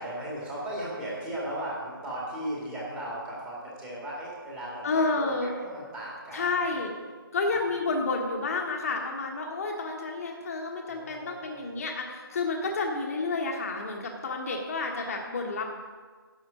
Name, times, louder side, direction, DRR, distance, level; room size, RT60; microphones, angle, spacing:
voice 1, 0.0-6.7 10.9-11.7, right 1 dB, 10° right, -6 dB, 2.0 m, -37 dB
voice 2, 4.8-5.5 6.3-6.9 7.3-15.6, left 3 dB, 40° left, 1 dB, 1.4 m, -30 dB
11.5 x 7.1 x 5.1 m, 1.5 s
figure-of-eight pair, 160°, 13 cm